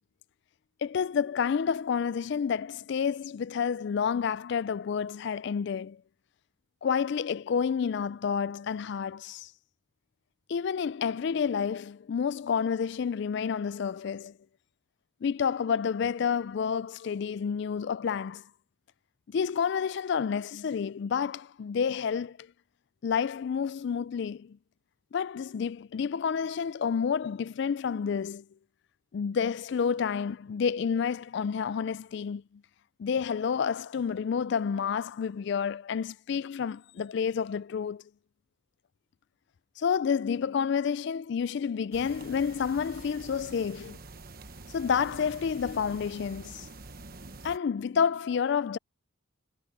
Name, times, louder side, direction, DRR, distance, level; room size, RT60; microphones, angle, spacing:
voice 1, 0.8-6.0 6.8-9.5 10.5-14.3 15.2-18.4 19.3-22.4 23.0-24.6 25.1-28.4 29.1-32.4 33.0-38.0 39.8-44.0 44.7-46.7 47.4-48.8, left 6 dB, 55° left, 0.3 m, -29 dB
sound 1, 41.9-47.6, right 3 dB, 45° right, 1.2 m, -46 dB
head